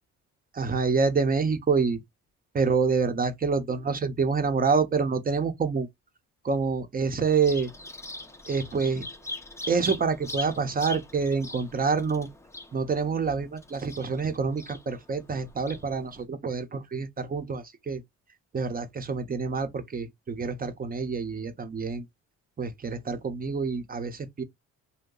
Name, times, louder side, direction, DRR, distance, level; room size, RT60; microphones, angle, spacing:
voice 1, 0.5-2.0 2.5-5.9 6.4-7.7 8.5-9.1 9.7-12.3 12.7-18.0 18.5-22.0 22.6-24.4, right 5 dB, 30° right, 0.8 m, -27 dB
Bird vocalization bird call bird song, 7.3-16.2, left 2 dB, 10° left, 0.6 m, -41 dB
2.7 x 2.2 x 3.8 m
cardioid pair, 90°, 30 cm